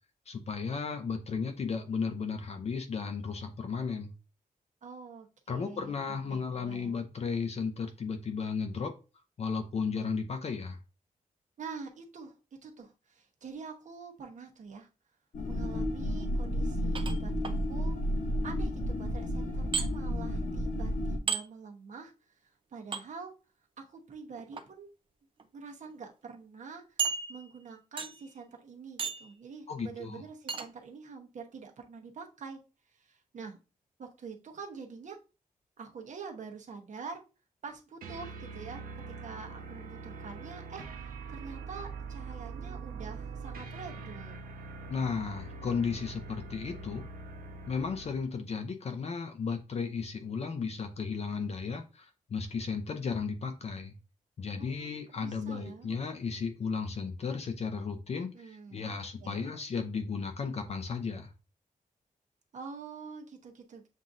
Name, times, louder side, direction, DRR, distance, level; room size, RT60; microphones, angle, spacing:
voice 1, 0.3-4.1 5.5-9.0 9.4-10.8 29.7-30.2 44.9-47.1 47.7-53.9 54.4-61.3, left 5 dB, 45° left, 6 dB, 0.6 m, -34 dB
voice 2, 4.8-7.0 11.6-12.4 12.6-14.9 15.5-18.0 18.4-23.3 23.8-24.9 25.5-27.0 27.3-32.6 32.9-33.6 34.0-35.2 35.8-37.2 37.6-44.4 54.6-54.9 55.1-55.9 58.3-59.5 62.5-63.9, right 5 dB, 60° right, 2 dB, 1.0 m, -46 dB
sound 1, 15.3-21.2, equal, 65° left, 1.0 m, -32 dB
sound 2, 17.0-17.6 19.7-19.9 21.3-21.4 22.9-23.0 24.4-24.6 25.4-25.5 25.8-25.9 27.0-27.6 28.0-28.3 29.0-29.3 30.5-30.7, right 5 dB, 35° right, 0.5 m, -33 dB
sound 3, 38.0-48.3, right 4 dB, 85° right, 0.8 m, -43 dB
7.3 x 2.7 x 2.4 m, 0.30 s
wide cardioid pair, 150°, 14 cm